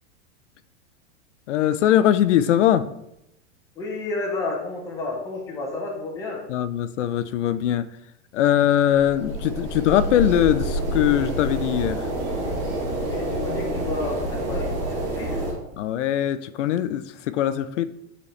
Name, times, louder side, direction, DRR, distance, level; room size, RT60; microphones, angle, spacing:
voice 1, 1.5-2.9 6.5-7.9 8.3-12.1 15.8-17.8, left 11 dB, 75° left, 13 dB, 0.5 m, -21 dB
voice 2, 3.7-6.4 13.0-15.4, left 2 dB, 10° left, -1 dB, 0.7 m, -31 dB
sound 1, 8.9-15.5, right 1 dB, 20° right, 1.8 m, -28 dB
9.8 x 4.1 x 3.2 m, 0.83 s
supercardioid pair, 175°, 37 cm